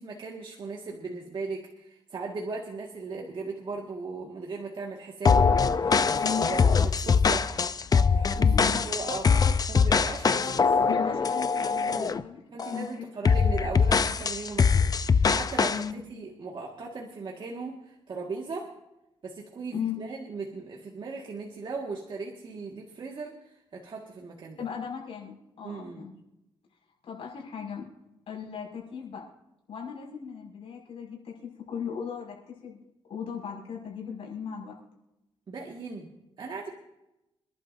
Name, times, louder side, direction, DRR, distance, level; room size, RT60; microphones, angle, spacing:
voice 1, 0.0-7.5 8.1-8.5 8.9-9.3 9.7-10.7 11.9-12.2 12.5-15.8 16.1-18.7 19.2-24.6 25.6-26.1 35.5-36.7, right 4 dB, 55° right, -1 dB, 1.8 m, -38 dB
sound 1, 5.2-12.2 12.6-12.8 13.2-15.8, left 5 dB, 40° left, 0.6 m, -23 dB
voice 2, 8.3-8.8 10.9-12.4 12.7-12.9 15.7-16.1 19.7-20.0 24.6-26.1 27.0-27.9 28.3-29.2 29.7-32.8 33.1-34.7, left 7 dB, 75° left, -2 dB, 5.9 m, -37 dB
27.5 x 11.5 x 2.7 m, 0.91 s
cardioid pair, 95°, 10 cm